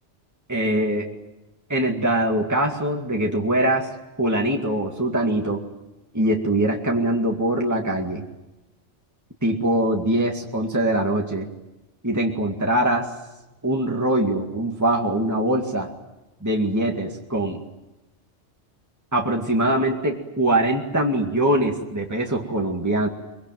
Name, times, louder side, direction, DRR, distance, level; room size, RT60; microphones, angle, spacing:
voice 1, 0.5-1.1 1.7-3.9 4.2-5.6 6.1-8.2 9.4-11.5 12.0-13.1 13.6-15.9 16.4-17.6 19.1-23.1, right 1 dB, 15° right, 0 dB, 2.2 m, -22 dB
24.0 x 23.0 x 9.3 m, 1.0 s
omnidirectional pair, 1.2 m